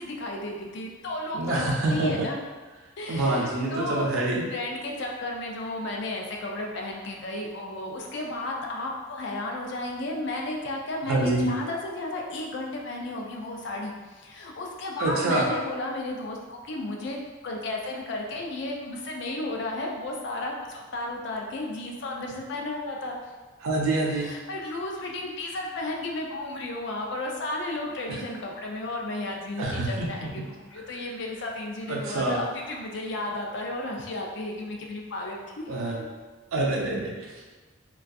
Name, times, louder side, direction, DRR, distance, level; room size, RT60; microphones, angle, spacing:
voice 1, 0.0-2.4 3.0-4.1 4.5-17.2 17.4-23.2 24.2-36.1, left 2 dB, 55° left, 0 dB, 0.4 m, -33 dB
voice 2, 1.3-2.3 3.1-4.5 11.1-11.5 15.0-15.5 23.6-24.3 28.1-28.2 29.6-30.3 31.9-32.4 35.7-36.0 36.5-37.5, right 2 dB, 85° right, -1 dB, 0.5 m, -26 dB
2.5 x 2.3 x 2.3 m, 1.3 s
head